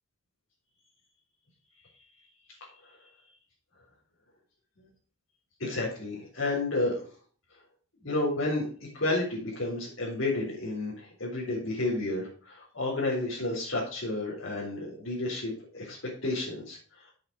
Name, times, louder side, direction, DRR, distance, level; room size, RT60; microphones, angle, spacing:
voice 1, 5.6-7.1 8.0-17.1, left 2 dB, 75° left, -8 dB, 4.1 m, -31 dB
7.8 x 7.7 x 4.8 m, 0.42 s
head